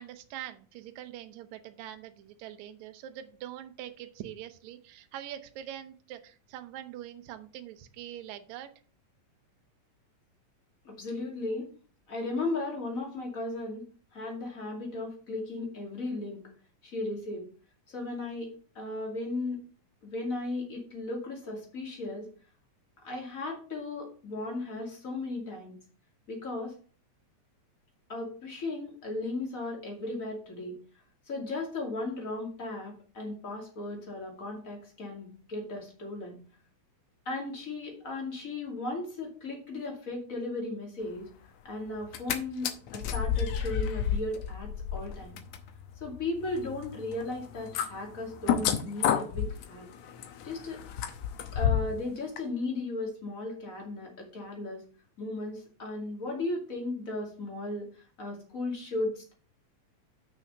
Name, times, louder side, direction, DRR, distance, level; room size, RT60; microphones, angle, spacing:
voice 1, 0.0-8.7, right 11 dB, 70° right, 8 dB, 2.0 m, -43 dB
voice 2, 10.8-11.7 12.1-13.8 14.1-16.4 16.8-17.5 17.9-19.6 20.0-22.3 23.0-25.7 26.3-26.7 28.1-30.8 31.3-36.4 37.3-41.3 41.6-45.4 46.0-49.9 50.4-50.8 51.5-54.8 55.2-59.3, left 2 dB, 25° left, 0 dB, 2.4 m, -36 dB
sound 1, 42.0-42.4 42.6-52.0 52.4-52.5, left 9 dB, 70° left, 1.8 m, -31 dB
6.3 x 6.3 x 5.4 m, 0.40 s
omnidirectional pair, 3.7 m